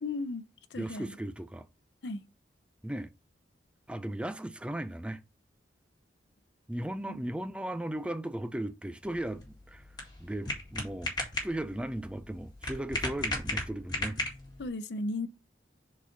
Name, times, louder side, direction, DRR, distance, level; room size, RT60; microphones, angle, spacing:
voice 1, 0.0-1.2 2.0-2.2 14.6-15.3, left 2 dB, 70° left, 0.7 m, -36 dB
voice 2, 0.8-1.7 2.8-3.1 3.9-5.2 6.7-9.9 10.2-11.1 11.4-14.2, right 1 dB, 5° right, 0.3 m, -36 dB
sound 1, 9.0-14.7, left 2 dB, 25° left, 2.0 m, -36 dB
4.7 x 4.2 x 5.8 m
head